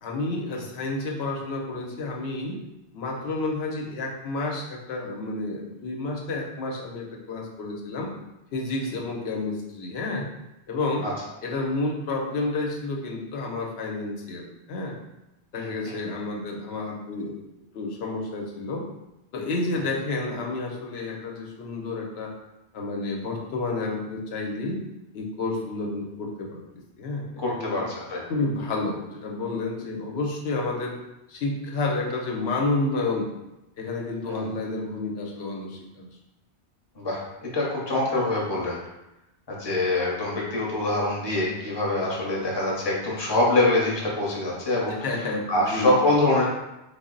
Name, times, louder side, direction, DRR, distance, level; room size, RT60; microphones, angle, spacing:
voice 1, 0.0-2.6 2.9-8.1 8.5-10.3 10.7-11.1 11.4-15.0 15.5-17.4 17.7-18.8 19.3-22.3 22.7-24.8 25.1-26.6 27.0-27.7 28.3-30.9 31.3-33.3 33.8-36.1 44.8-45.9, left 3 dB, 70° left, 0 dB, 0.9 m, -30 dB
voice 2, 15.5-16.0 27.4-27.8 28.1-28.2 34.3-34.5 37.0-38.8 39.5-46.5, left 2 dB, 25° left, -4 dB, 0.8 m, -25 dB
3.5 x 2.0 x 3.8 m, 0.94 s
omnidirectional pair, 1.1 m